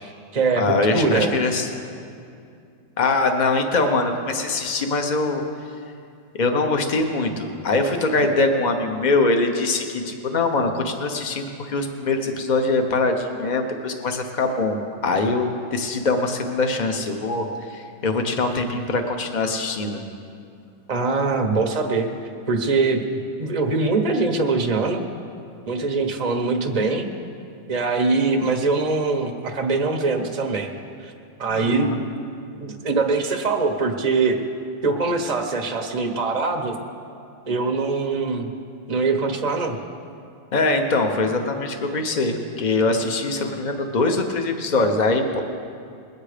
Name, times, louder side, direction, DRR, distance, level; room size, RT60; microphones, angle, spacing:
voice 1, 0.0-1.3 8.1-8.3 20.9-22.1 22.5-23.0 23.4-25.0 25.7-27.0 27.7-30.7 31.0-31.1 31.4-31.9 32.5-34.4 34.8-36.7 37.5-38.5 38.9-39.8, right 3 dB, 50° right, 3 dB, 0.4 m, -22 dB
voice 2, 0.5-1.7 3.0-5.4 6.4-20.0 31.5-32.0 40.5-45.4, left 3 dB, 80° left, 5 dB, 0.4 m, -23 dB
21.0 x 8.7 x 5.0 m, 2.5 s
omnidirectional pair, 2.1 m